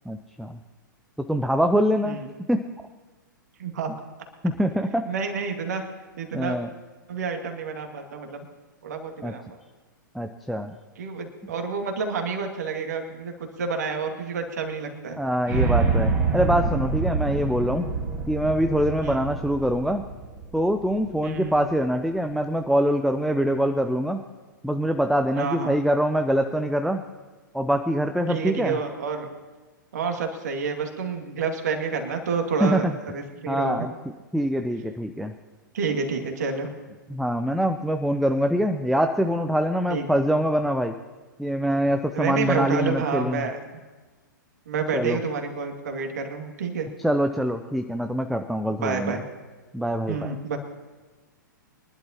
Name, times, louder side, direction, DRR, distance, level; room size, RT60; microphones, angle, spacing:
voice 1, 0.1-0.6 1.3-2.2 2.5-2.6 4.4-5.0 6.3-6.7 9.2-9.3 10.1-10.7 15.2-17.8 18.3-20.0 20.5-24.2 24.6-27.0 27.5-28.8 32.6-32.9 33.5-33.9 34.3-35.3 37.1-40.9 41.4-43.4 44.9-45.2 47.0-49.2 49.7-50.3, equal, ahead, 7 dB, 0.4 m, -24 dB
voice 2, 3.6-4.0 5.0-5.9 6.2-6.6 7.1-8.5 8.8-9.6 11.0-15.2 19.0-19.2 21.2-21.6 25.4-25.8 28.3-29.3 29.9-33.8 35.7-36.7 39.9-40.1 42.1-43.6 44.7-46.9 48.7-49.2 50.1-50.6, right 5 dB, 55° right, 4 dB, 2.3 m, -29 dB
sound 1, 15.5-21.6, right 4 dB, 25° right, 2.5 m, -26 dB
24.0 x 11.5 x 3.0 m, 1.3 s
figure-of-eight pair, 110°, 11 cm